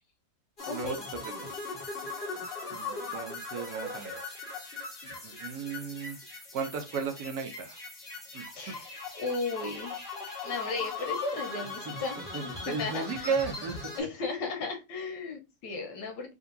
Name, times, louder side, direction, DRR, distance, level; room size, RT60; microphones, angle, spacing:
sound 1, 0.6-14.0, left 3 dB, 35° left, 1.5 m, -39 dB
voice 1, 0.7-1.0 8.6-10.0 10.4-13.3 14.0-16.3, left 4 dB, 80° left, 4 dB, 1.5 m, -35 dB
voice 2, 2.7-4.2 5.2-6.2 6.5-7.8 8.3-8.8 12.3-13.7, right 5 dB, 70° right, 5 dB, 1.0 m, -35 dB
3.8 x 2.6 x 2.5 m, 0.26 s
omnidirectional pair, 1.9 m